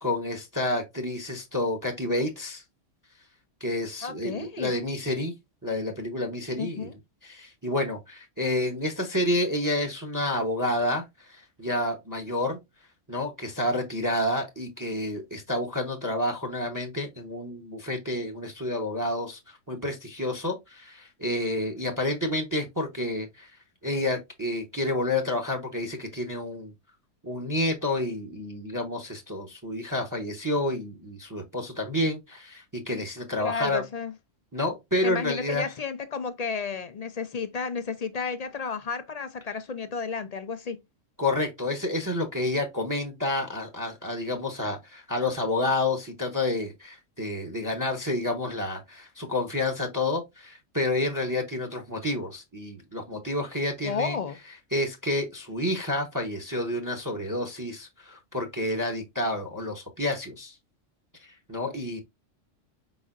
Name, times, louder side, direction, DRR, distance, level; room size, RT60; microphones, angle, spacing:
voice 1, 0.0-2.6 3.6-5.3 5.6-6.9 7.2-12.6 13.1-23.5 23.8-26.7 27.2-33.8 34.5-35.7 41.2-54.2 54.7-60.6 61.2-62.0, left 1 dB, 20° right, 0.8 m, -29 dB
voice 2, 4.0-4.7 6.6-6.9 33.4-34.1 35.0-40.8 53.8-54.4, left 5 dB, 55° left, 0.4 m, -32 dB
4.9 x 4.1 x 2.4 m
omnidirectional pair, 1.3 m